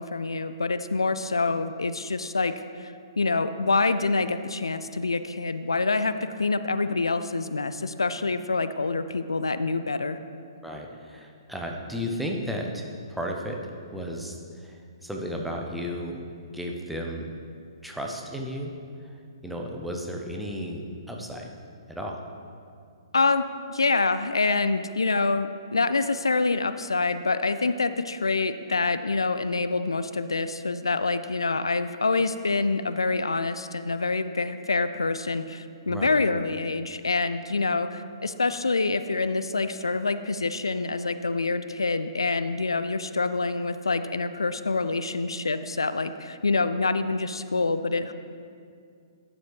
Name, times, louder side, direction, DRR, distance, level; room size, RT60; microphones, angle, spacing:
voice 1, 0.0-2.5 2.8-10.2 23.1-23.4 23.7-48.1, left 3 dB, 80° left, 11 dB, 0.3 m, -26 dB
voice 2, 10.6-13.6 13.9-16.2 16.5-17.3 17.8-18.7 19.0-19.2 19.4-21.5 21.9-22.2 35.9-36.1, equal, ahead, 0 dB, 0.8 m, -34 dB
11.0 x 7.1 x 3.3 m, 2.3 s
figure-of-eight pair, 120°, 3 cm